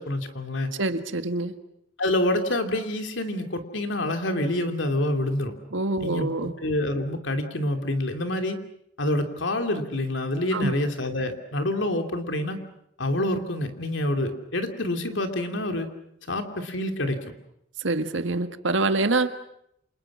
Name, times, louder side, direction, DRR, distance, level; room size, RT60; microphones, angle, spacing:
voice 1, 0.0-0.7 2.0-5.5 6.0-8.6 9.0-12.6 13.0-15.9 16.3-17.2, left 1 dB, 70° left, 6 dB, 3.0 m, -27 dB
voice 2, 0.8-1.6 5.7-6.5 10.5-10.7 17.8-19.3, right 2 dB, 80° right, 9 dB, 1.7 m, -25 dB
29.0 x 27.0 x 6.3 m, 0.75 s
head